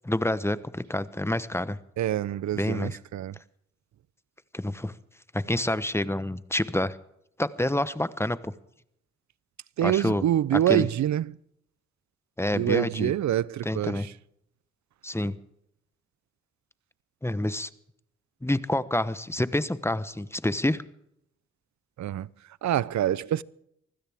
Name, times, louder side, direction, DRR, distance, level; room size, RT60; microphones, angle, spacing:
voice 1, 0.0-1.8 2.5-3.0 4.5-4.9 5.3-7.0 7.4-8.5 9.8-10.2 10.7-10.8 12.4-13.1 13.6-14.1 15.0-15.3 17.2-17.7 18.4-20.8, left 1 dB, 10° left, 1.0 m, -28 dB
voice 2, 2.0-3.4 9.8-11.4 12.5-14.1 22.0-22.3 22.6-23.4, right 11 dB, 70° right, 0.6 m, -26 dB
24.5 x 16.0 x 3.6 m
cardioid pair, 60°, 29 cm